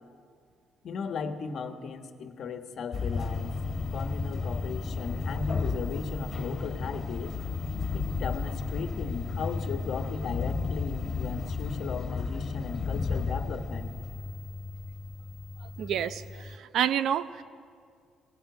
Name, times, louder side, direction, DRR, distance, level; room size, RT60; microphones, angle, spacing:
voice 1, 0.8-3.5 3.9-7.4 7.9-14.0, left 5 dB, 55° left, 7 dB, 1.4 m, -37 dB
sound 1, 2.9-16.6, left 4 dB, 40° left, 1.8 m, -33 dB
voice 2, 15.6-17.4, right 9 dB, 65° right, 13 dB, 0.7 m, -29 dB
21.5 x 17.0 x 8.3 m, 2.1 s
cardioid pair, 140°, 0 cm